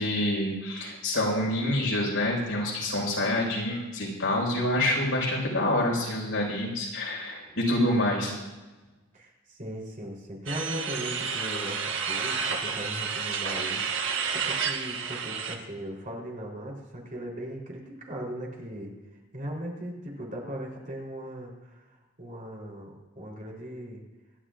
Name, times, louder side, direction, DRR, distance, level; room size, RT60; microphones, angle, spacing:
voice 1, 0.0-8.3, left 1 dB, 70° left, -2 dB, 5.0 m, -27 dB
voice 2, 9.1-24.0, right 1 dB, 40° right, -1 dB, 3.7 m, -38 dB
sound 1, 10.5-15.6, right 6 dB, 65° right, 1.4 m, -30 dB
26.5 x 11.0 x 2.5 m, 1.2 s
head